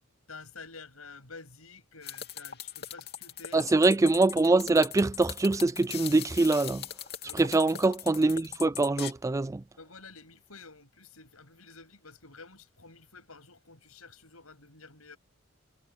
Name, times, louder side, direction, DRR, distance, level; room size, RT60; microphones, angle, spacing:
voice 1, 0.3-3.7 7.2-7.6 9.8-15.2, left 4 dB, 85° left, 8.0 m, -50 dB
sound 1, 2.0-9.1, left 9 dB, 50° left, 2.9 m, -40 dB
voice 2, 3.5-6.8 7.4-9.6, right 2 dB, 15° right, 0.3 m, -24 dB
head